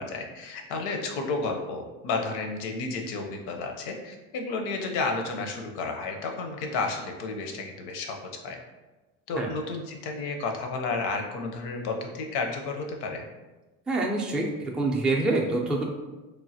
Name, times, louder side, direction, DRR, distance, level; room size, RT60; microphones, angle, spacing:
voice 1, 0.0-8.2 8.4-8.6 9.3-13.2, left 3 dB, 70° left, 3 dB, 0.7 m, -32 dB
voice 2, 13.9-15.8, right 2 dB, ahead, -2 dB, 0.4 m, -26 dB
3.2 x 2.1 x 2.7 m, 1.1 s
supercardioid pair, 75°, 41 cm